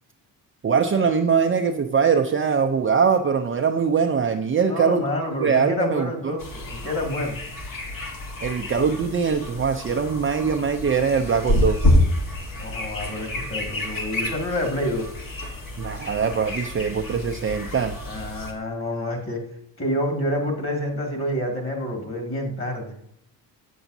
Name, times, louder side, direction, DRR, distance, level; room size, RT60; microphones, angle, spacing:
voice 1, 0.6-5.1 5.4-6.4 8.4-11.8 15.8-18.0, right 6 dB, 30° right, 4 dB, 0.6 m, -22 dB
voice 2, 4.7-7.4 12.6-15.0 18.0-19.4 19.8-23.0, left 1 dB, 30° left, 1 dB, 2.3 m, -28 dB
sound 1, 6.4-18.5, left 1 dB, 50° left, 1.6 m, -28 dB
7.7 x 7.0 x 2.7 m, 0.75 s
supercardioid pair, 65°, 43 cm